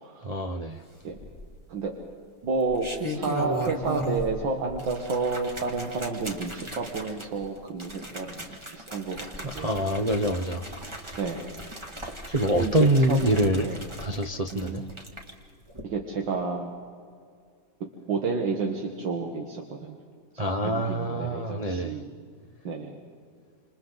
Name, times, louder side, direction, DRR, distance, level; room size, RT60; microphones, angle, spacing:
voice 1, 0.2-0.8 9.4-10.7 12.3-13.7 14.0-14.8 20.4-22.0, right 1 dB, 45° right, 2 dB, 0.5 m, -25 dB
sound 1, 1.1-1.7 2.6-4.4 4.7-15.3 15.7-15.8, equal, 15° right, 1.7 m, -37 dB
voice 2, 2.4-9.7 11.2-11.5 12.5-12.7 13.1-13.2 13.6-13.8 14.5-14.9 15.8-16.7 18.1-20.0 20.3-22.1 22.6-23.0, right 4 dB, 75° right, 1 dB, 2.2 m, -30 dB
28.0 x 27.0 x 4.0 m, 2.1 s
omnidirectional pair, 2.1 m